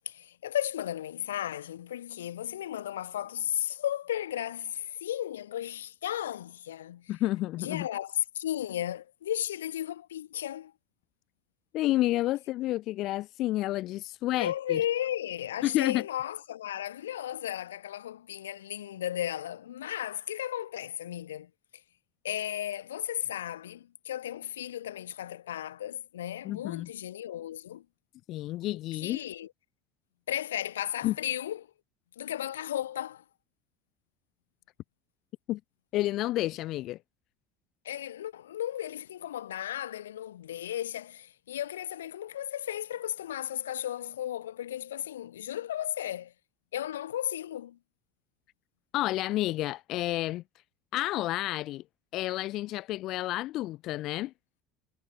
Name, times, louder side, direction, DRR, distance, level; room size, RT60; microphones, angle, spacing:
voice 1, 0.1-7.1 7.6-10.7 14.4-21.5 22.2-27.8 28.9-29.5 30.3-31.7 32.2-33.2 37.8-46.3 46.7-47.8, left 11 dB, 85° left, 1.4 m, -34 dB
voice 2, 7.1-7.9 11.7-14.8 15.6-16.0 26.4-26.9 28.3-29.2 31.0-31.2 35.5-35.6 35.9-37.0 48.9-50.4 50.9-51.8 52.1-54.3, left 16 dB, 60° left, 0.8 m, -30 dB
hypercardioid pair, 70°, 0 cm